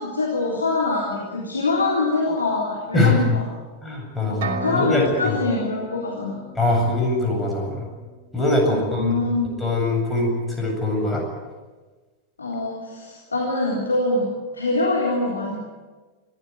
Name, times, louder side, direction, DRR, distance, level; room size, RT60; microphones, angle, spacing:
voice 1, 0.0-3.4 4.2-6.4 8.7-9.6 12.4-14.3 14.5-15.6, left 2 dB, 75° left, -3 dB, 3.9 m, -24 dB
voice 2, 3.8-5.3 6.6-7.8 8.3-9.1 9.6-10.3 10.6-11.2, left 2 dB, 5° left, 0 dB, 8.0 m, -22 dB
sound 1, 4.4-8.2, right 2 dB, 55° right, 3.0 m, -34 dB
24.0 x 15.5 x 9.4 m, 1.3 s
figure-of-eight pair, 90°, 0 cm